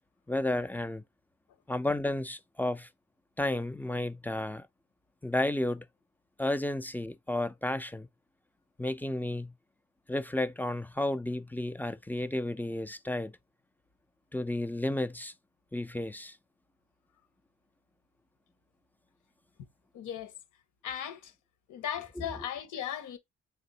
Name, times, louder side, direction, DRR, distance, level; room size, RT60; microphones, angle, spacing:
voice 1, 0.3-1.0 1.7-2.9 3.4-4.7 5.2-5.9 6.4-8.1 8.8-9.5 10.1-13.4 14.3-15.3 15.7-16.4, left 1 dB, 5° left, 0.4 m, -32 dB
voice 2, 19.9-20.3 20.8-21.3 21.7-23.2, left 9 dB, 80° left, 1.2 m, -37 dB
3.5 x 3.3 x 4.1 m
cardioid pair, 90°, 30 cm